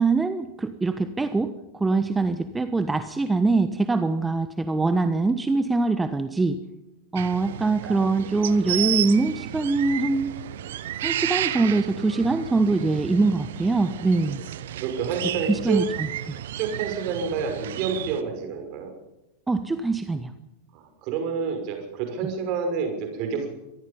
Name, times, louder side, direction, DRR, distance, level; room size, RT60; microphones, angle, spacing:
voice 1, 0.0-6.6 7.1-10.3 11.0-14.4 15.5-16.1 19.5-20.3, right 3 dB, 10° right, 10 dB, 1.2 m, -23 dB
sound 1, 7.2-18.2, right 12 dB, 55° right, 1.1 m, -32 dB
voice 2, 14.8-15.9 16.5-18.9 20.7-23.5, right 6 dB, 40° right, 5 dB, 6.0 m, -28 dB
25.5 x 19.5 x 5.5 m, 0.97 s
figure-of-eight pair, 90°, 0 cm